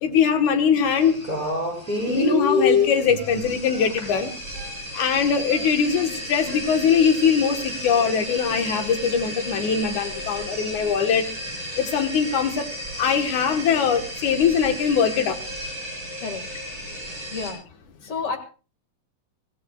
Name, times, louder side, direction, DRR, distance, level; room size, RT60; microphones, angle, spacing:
voice 1, 0.0-1.2 2.1-4.3 4.9-11.2 11.8-12.7 13.0-15.4, left 7 dB, 65° left, 6 dB, 2.6 m, -21 dB
sound 1, 0.8-17.5, left 2 dB, 25° right, 6.2 m, -30 dB
sound 2, 1.3-1.6 1.8-3.4 3.7-4.8 5.1-6.1 6.5-7.6 7.8-8.1, right 1 dB, 45° right, 6.8 m, -45 dB
voice 2, 18.0-18.4, left 5 dB, 45° left, 4 dB, 2.6 m, -29 dB
26.0 x 15.5 x 2.4 m, 0.35 s
omnidirectional pair, 4.1 m